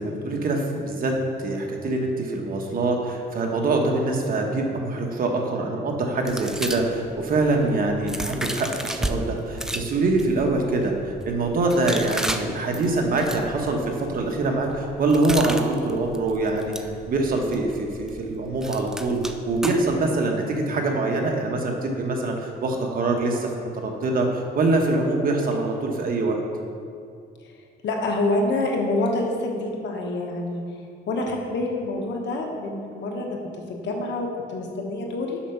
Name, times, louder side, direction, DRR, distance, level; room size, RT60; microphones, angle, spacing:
voice 1, 0.0-11.0 11.2-16.7 17.1-19.2 19.5-26.4, right 2 dB, 50° right, 1 dB, 1.2 m, -24 dB
sound 1, 6.3-9.2 9.5-20.1, right 1 dB, 5° right, 0.4 m, -35 dB
voice 2, 27.8-35.4, left 2 dB, 75° left, 1 dB, 1.3 m, -27 dB
7.2 x 5.8 x 5.7 m, 2.4 s
cardioid pair, 125°, 19 cm